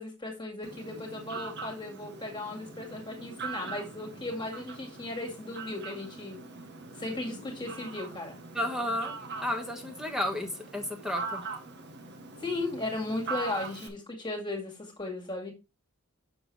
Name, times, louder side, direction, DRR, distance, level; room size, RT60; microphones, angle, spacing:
voice 1, 0.0-6.4 7.0-8.4 12.4-15.5, left 2 dB, 20° left, 1 dB, 2.0 m, -36 dB
Fowl, 0.6-13.9, right 4 dB, 50° right, 1.2 m, -42 dB
voice 2, 8.5-9.1 9.4-11.4, left 1 dB, 5° right, 4 dB, 1.2 m, -32 dB
7.0 x 6.3 x 3.3 m, 0.27 s
head